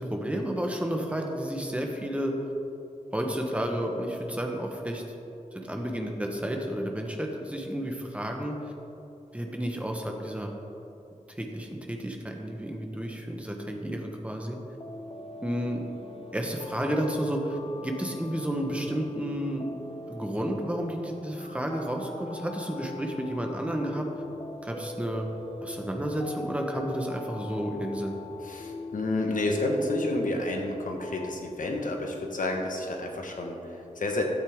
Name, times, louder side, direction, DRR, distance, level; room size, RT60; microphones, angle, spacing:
voice 1, 0.0-2.3 3.1-5.0 5.5-8.5 9.3-10.5 11.4-14.6 15.4-15.8 16.3-17.6 17.8-19.7 20.1-24.1 24.6-25.3 25.6-28.2, equal, 10° right, 2 dB, 1.2 m, -31 dB
sound 1, 14.8-31.3, left 2 dB, 40° left, 0.8 m, -42 dB
voice 2, 28.4-34.2, left 2 dB, 75° left, 2 dB, 1.4 m, -30 dB
12.5 x 8.4 x 3.7 m, 2.9 s
wide cardioid pair, 110°, 14 cm